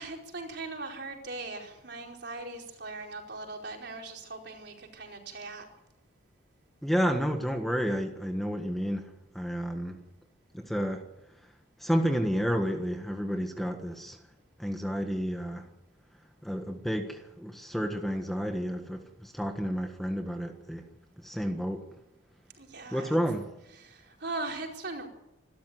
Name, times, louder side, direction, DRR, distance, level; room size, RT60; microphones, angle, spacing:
voice 1, 0.0-5.7 22.5-23.2 23.8-25.1, right 3 dB, 55° right, 1 dB, 4.7 m, -39 dB
voice 2, 6.8-10.0 10.5-11.0 11.8-14.2 14.6-15.7 16.4-20.9 21.2-21.9 22.9-23.5, equal, ahead, 4 dB, 1.5 m, -31 dB
26.5 x 13.0 x 9.4 m, 0.91 s
head